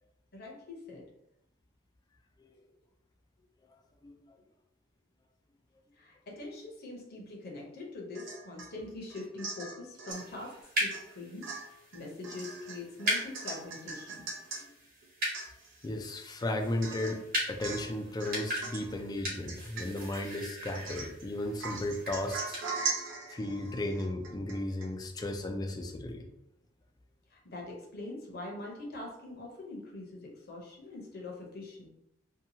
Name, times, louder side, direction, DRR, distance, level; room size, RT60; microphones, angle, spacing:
voice 1, 0.3-1.0 6.0-14.3 27.3-31.9, left 2 dB, 55° left, -1 dB, 0.7 m, -43 dB
voice 2, 4.0-4.3 15.8-22.6 23.3-26.3, left 1 dB, 20° left, 4 dB, 0.3 m, -35 dB
Domestic sounds home sounds / Chink clink / Drip, 8.2-8.7 9.1-10.3 10.9-11.1 11.4-14.6 15.0-15.1 15.3-15.9 16.3-16.4 16.8-17.2 17.6-17.9 18.2-18.9 19.5-20.2 20.7-21.2 21.6-24.9 25.2-25.3, right 4 dB, 70° right, 0.6 m, -40 dB
sound 1, 10.1-22.7, equal, 50° right, 1.1 m, -39 dB
2.7 x 2.2 x 2.7 m, 0.80 s
head